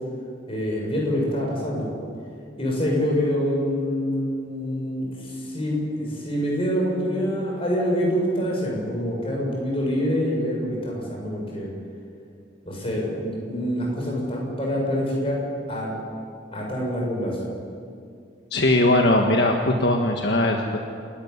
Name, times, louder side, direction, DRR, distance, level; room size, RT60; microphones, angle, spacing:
voice 1, 0.5-1.9 2.6-11.7 12.6-15.4 15.7-15.9 16.5-17.4, equal, 30° left, -2 dB, 7.3 m, -26 dB
voice 2, 18.5-20.8, left 1 dB, 60° left, 2 dB, 1.6 m, -20 dB
28.5 x 13.5 x 9.7 m, 2.4 s
head